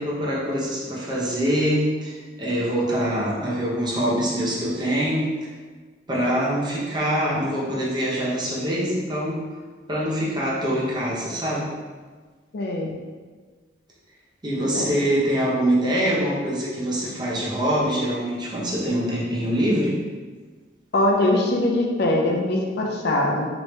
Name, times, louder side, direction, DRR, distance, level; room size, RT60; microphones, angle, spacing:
voice 1, 0.0-5.5 6.1-9.4 9.9-11.7 14.4-20.0, equal, 25° right, -6 dB, 0.7 m, -24 dB
voice 2, 12.5-13.0 14.7-14.9 20.9-23.5, left 1 dB, 55° left, 0 dB, 0.5 m, -22 dB
3.0 x 2.7 x 3.2 m, 1.4 s
head